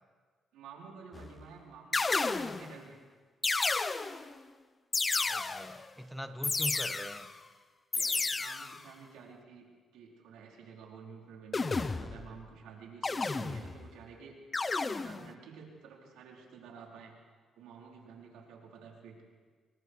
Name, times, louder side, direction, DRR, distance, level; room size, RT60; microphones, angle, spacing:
voice 1, 0.5-3.0 6.0-6.1 7.9-14.4 14.9-17.1 17.6-19.2, right 6 dB, 90° right, -1 dB, 4.6 m, -51 dB
sound 1, 1.1-1.4 1.9-2.8 3.4-4.3 4.9-5.8 6.4-7.3 7.9-8.8 11.5-12.3 13.0-13.9 14.5-15.3, left 3 dB, 30° left, 1.0 m, -32 dB
voice 2, 5.3-7.3, equal, ahead, 7 dB, 1.3 m, -42 dB
30.0 x 23.0 x 4.8 m, 1.5 s
cardioid pair, 90°, 0 cm